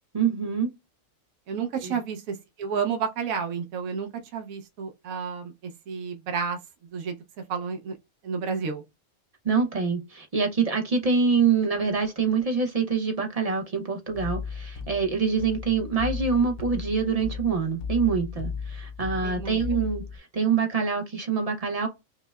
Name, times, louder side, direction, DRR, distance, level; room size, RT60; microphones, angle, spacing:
voice 1, 0.1-0.7 1.8-2.0 9.4-21.9, right 5 dB, 35° right, 0.6 m, -25 dB
voice 2, 1.5-6.6 6.9-7.2 7.5-7.9 8.2-8.8 19.2-19.6, right 6 dB, 85° right, 1.1 m, -31 dB
sound 1, 14.1-20.2, left 6 dB, 75° left, 1.0 m, -35 dB
5.4 x 2.0 x 2.3 m
omnidirectional pair, 1.4 m